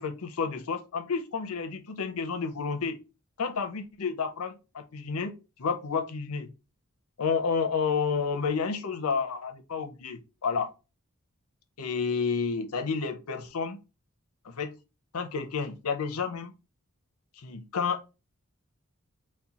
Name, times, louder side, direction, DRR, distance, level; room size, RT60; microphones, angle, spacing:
voice 1, 0.0-3.0 3.4-5.3 5.6-6.5 7.2-10.7 11.8-13.8 14.4-14.7 15.1-16.5 17.4-18.0, left 5 dB, 90° left, 0.7 m, -30 dB
4.2 x 2.2 x 4.0 m
head